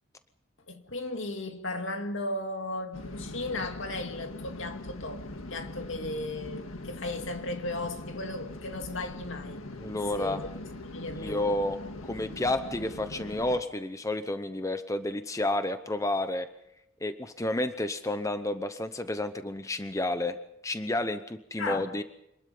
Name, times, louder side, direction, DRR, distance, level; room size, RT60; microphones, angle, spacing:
voice 1, 0.7-9.6 10.2-10.5 10.8-11.6 21.6-21.9, left 2 dB, 65° left, 2.3 m, -36 dB
sound 1, 2.9-13.6, left 1 dB, 90° left, 1.8 m, -41 dB
voice 2, 9.8-10.4 11.2-11.8 12.1-16.5 17.0-20.4 20.6-22.0, left 1 dB, 15° left, 0.8 m, -30 dB
26.0 x 20.5 x 5.5 m
head